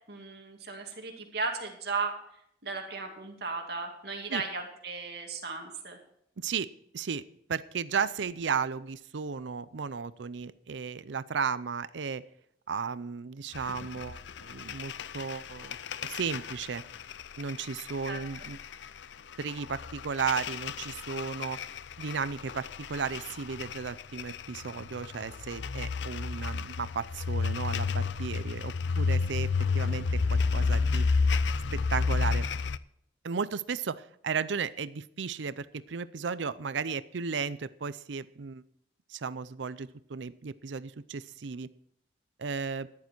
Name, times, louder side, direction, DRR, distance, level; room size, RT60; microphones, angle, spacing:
voice 1, 0.1-2.2 2.6-6.0 18.1-18.5, right 4 dB, 60° right, 2 dB, 2.4 m, -36 dB
voice 2, 6.4-6.7 6.9-7.2 7.5-12.2 12.7-15.8 16.0-16.8 17.4-18.6 19.4-21.6 22.0-29.5 29.7-31.0 31.7-32.5 33.2-38.6 39.1-41.7 42.4-42.9, right 6 dB, 80° right, 16 dB, 0.5 m, -34 dB
sound 1, 13.5-32.8, left 4 dB, 75° left, 0.5 m, -31 dB
14.0 x 10.5 x 4.5 m, 0.72 s
head